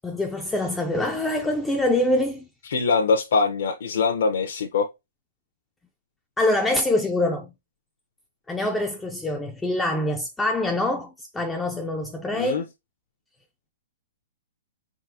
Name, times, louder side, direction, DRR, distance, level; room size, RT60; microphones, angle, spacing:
voice 1, 0.0-2.4 6.4-7.5 8.5-12.6, left 1 dB, 5° left, 0.3 m, -25 dB
voice 2, 2.7-4.9 12.3-12.6, left 4 dB, 60° left, 0.7 m, -23 dB
5.2 x 3.7 x 2.7 m
hypercardioid pair, 175°, 0 cm